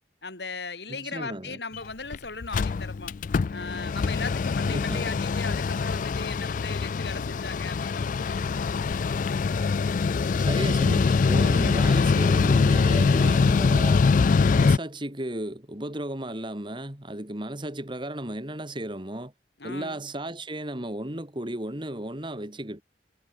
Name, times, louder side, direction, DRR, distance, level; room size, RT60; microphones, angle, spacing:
voice 1, 0.2-3.1 3.5-9.2 19.6-20.0, left 4 dB, 65° left, 4.3 m, -38 dB
voice 2, 0.9-1.6 4.6-5.1 10.5-14.0 14.5-19.3 19.6-22.8, right 1 dB, 25° right, 2.6 m, -34 dB
Mechanical fan, 1.7-1.8 2.1-2.2 2.4-14.8, left 4 dB, 45° left, 0.3 m, -23 dB
head